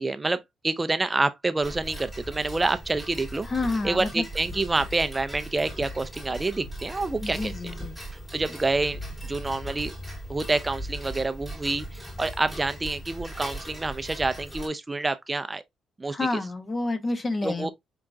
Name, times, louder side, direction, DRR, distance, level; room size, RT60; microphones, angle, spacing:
voice 1, 0.0-3.5 3.8-7.5 8.3-9.0 9.3-9.9 10.3-15.6 16.0-16.2 17.4-17.7, right 3 dB, 20° right, 0.4 m, -27 dB
Tick-tock, 1.6-14.7, right 1 dB, 15° left, 2.4 m, -39 dB
voice 2, 3.4-4.3 7.2-8.0 16.1-17.7, left 2 dB, 30° left, 0.8 m, -29 dB
sound 1, 3.6-4.0 4.5-5.2 5.8-8.2 8.9-9.7, left 2 dB, ahead, 1.8 m, -43 dB
4.7 x 3.7 x 2.3 m
cardioid pair, 90°, 0 cm